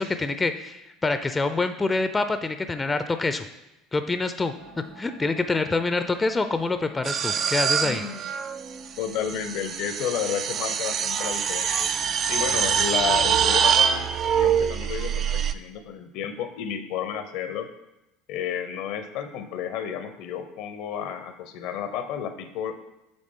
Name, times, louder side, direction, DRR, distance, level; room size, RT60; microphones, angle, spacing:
voice 1, 0.0-3.5 3.9-4.5 5.0-8.0, left 3 dB, 20° left, 9 dB, 0.5 m, -26 dB
sound 1, 4.5-9.8, right 2 dB, 70° right, 1.7 m, -51 dB
sound 2, 7.0-15.5, right 7 dB, 45° right, 0.4 m, -24 dB
voice 2, 7.8-8.3 9.0-11.9 12.3-14.1 14.3-17.7 18.3-22.7, left 8 dB, 60° left, 9 dB, 0.7 m, -31 dB
7.9 x 3.9 x 3.7 m, 0.96 s
hypercardioid pair, 70°, 0 cm